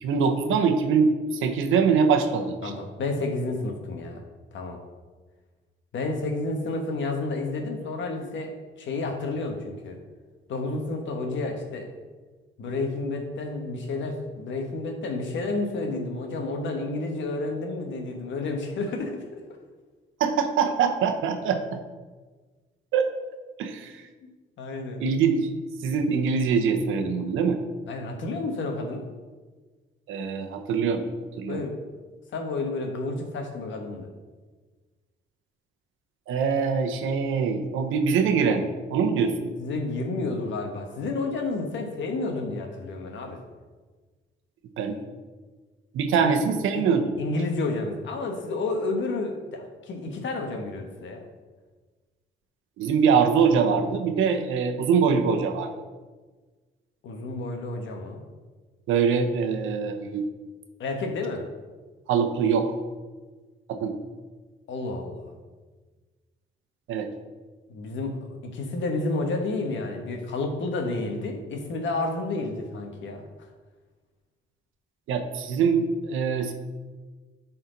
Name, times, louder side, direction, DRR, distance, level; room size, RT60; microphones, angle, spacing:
voice 1, 0.0-2.7 20.2-21.6 22.9-23.1 23.6-24.0 25.0-25.5 25.8-27.6 30.1-31.0 31.4-31.6 36.3-39.5 44.8-45.0 45.9-47.2 52.8-55.7 58.9-60.3 62.1-62.7 63.7-64.0 66.9-67.1 75.1-76.5, right 6 dB, 85° right, 5 dB, 0.9 m, -23 dB
voice 2, 2.6-4.2 4.5-4.8 5.9-8.5 8.8-10.0 10.5-11.9 12.6-19.4 24.6-25.0 27.9-29.0 31.5-31.7 32.3-34.1 39.6-43.4 46.7-46.8 47.2-51.2 57.0-58.2 60.8-61.4 64.7-65.3 67.7-68.1 68.5-73.2, left 3 dB, 70° left, 3 dB, 1.4 m, -30 dB
11.0 x 4.4 x 4.0 m, 1.4 s
cardioid pair, 90°, 20 cm